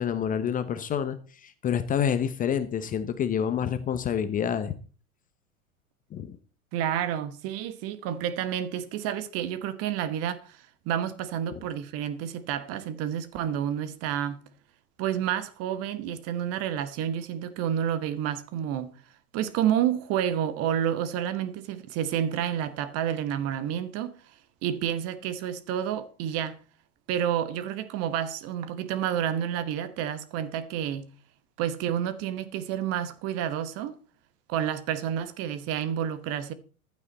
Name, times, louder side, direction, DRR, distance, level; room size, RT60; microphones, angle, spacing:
voice 1, 0.0-4.7 6.1-6.4, left 8 dB, 20° left, 1.0 m, -28 dB
voice 2, 6.7-14.4 15.0-18.9 19.3-24.1 24.6-26.6 27.1-31.1 31.6-34.0 34.5-36.5, right 10 dB, 35° right, 1.4 m, -29 dB
15.0 x 12.0 x 4.2 m
figure-of-eight pair, 95°, 44 cm